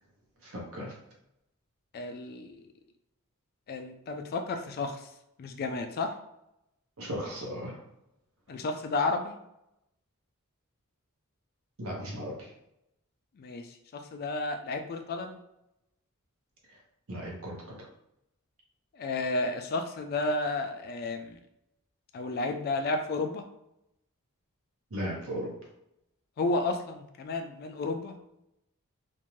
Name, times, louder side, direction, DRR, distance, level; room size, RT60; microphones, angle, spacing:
voice 1, 0.4-0.9 7.0-7.8 11.8-12.5 16.7-16.8 17.1-17.9 24.9-25.5, equal, 65° right, -1 dB, 0.8 m, -37 dB
voice 2, 1.9-2.6 3.7-5.1 5.4-6.2 8.5-9.4 13.4-13.7 13.9-15.4 19.0-21.4 22.1-23.4 26.4-28.2, left 2 dB, 45° left, 6 dB, 0.3 m, -32 dB
2.6 x 2.2 x 3.0 m, 0.83 s
head